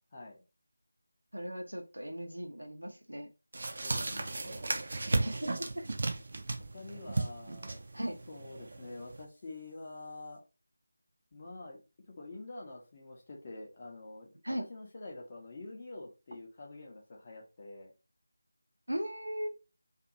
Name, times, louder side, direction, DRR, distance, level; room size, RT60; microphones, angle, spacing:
voice 1, 0.1-0.4 3.8-4.7 6.7-7.8 8.3-10.4 11.3-11.8 12.1-17.9, left 2 dB, 25° left, 0 dB, 0.7 m, -47 dB
voice 2, 1.3-3.3 5.1-5.9 7.9-8.2 14.4-14.7 18.9-19.5, equal, 80° right, 5 dB, 0.7 m, -38 dB
sound 1, 3.5-9.2, right 2 dB, 40° right, 0.5 m, -35 dB
2.6 x 2.6 x 2.5 m, 0.29 s
figure-of-eight pair, 165°, 0 cm